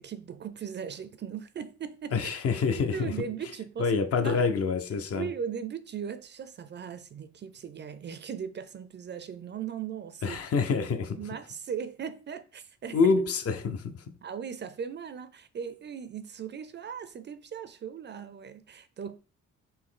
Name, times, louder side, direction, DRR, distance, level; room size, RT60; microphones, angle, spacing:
voice 1, 0.0-2.4 2.9-3.9 4.2-4.5 5.1-10.4 11.2-13.1 14.2-19.2, right 7 dB, 35° right, 0.4 m, -38 dB
voice 2, 2.1-3.1 3.8-5.3 10.2-11.2 12.9-14.2, left 5 dB, 50° left, 0.6 m, -27 dB
4.3 x 2.6 x 3.7 m
cardioid pair, 90°, 30 cm